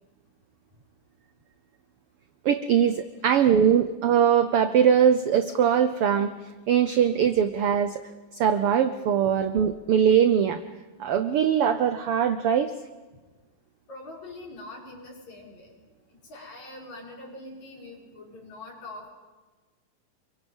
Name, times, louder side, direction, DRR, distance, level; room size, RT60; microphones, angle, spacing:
voice 1, 2.4-6.3 6.7-8.0 8.4-10.6 11.0-12.7, right 8 dB, 90° right, 10 dB, 1.2 m, -21 dB
voice 2, 13.9-15.7 16.1-19.1, left 2 dB, 60° left, -1 dB, 6.2 m, -43 dB
29.0 x 23.0 x 5.4 m, 1.3 s
omnidirectional pair, 3.7 m